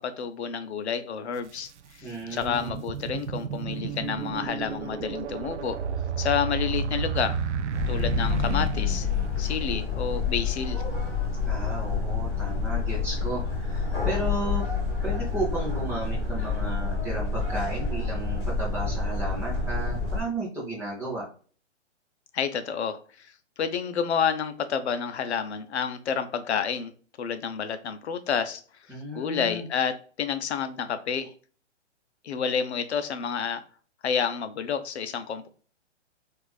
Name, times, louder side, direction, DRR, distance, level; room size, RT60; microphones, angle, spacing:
voice 1, 0.0-1.7 2.0-5.8 6.2-7.4 7.9-9.1 9.4-10.8 22.3-23.3 23.6-26.9 27.2-28.6 29.1-31.3 32.2-33.6 34.0-35.5, left 7 dB, 65° left, 10 dB, 0.6 m, -29 dB
sound 1, 1.4-1.5 2.0-9.6, right 6 dB, 75° right, 0.5 m, -31 dB
voice 2, 2.0-2.8 11.4-14.6 15.0-21.3 28.9-29.7, right 1 dB, 5° right, -5 dB, 0.6 m, -34 dB
sound 2, 7.7-20.2, left 5 dB, 20° left, 1.7 m, -28 dB
4.3 x 2.5 x 2.3 m, 0.42 s
hypercardioid pair, 150°, 36 cm